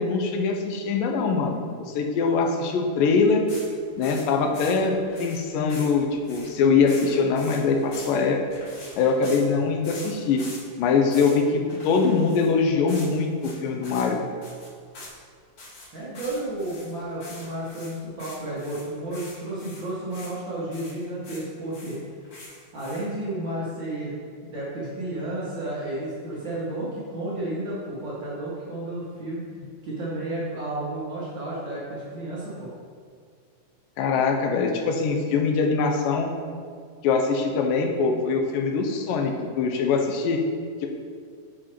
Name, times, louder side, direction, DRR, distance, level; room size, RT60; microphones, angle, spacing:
voice 1, 0.0-1.6 1.9-3.4 4.0-8.4 9.0-10.4 10.8-14.2 34.0-36.3 37.0-40.4, left 4 dB, 90° left, 3 dB, 2.3 m, -23 dB
sound 1, 3.5-9.4 9.8-10.6 10.9-11.4 11.7-12.5 12.8-13.1 13.4-13.5 13.8-14.1 14.4-15.2 15.6-20.4 20.7-21.5 21.7-23.2, left 2 dB, 45° left, 1.8 m, -43 dB
voice 2, 15.9-22.0 22.7-29.5 29.8-32.7, right 1 dB, 70° right, -8 dB, 1.1 m, -32 dB
7.3 x 4.9 x 4.4 m, 2.1 s
omnidirectional pair, 3.9 m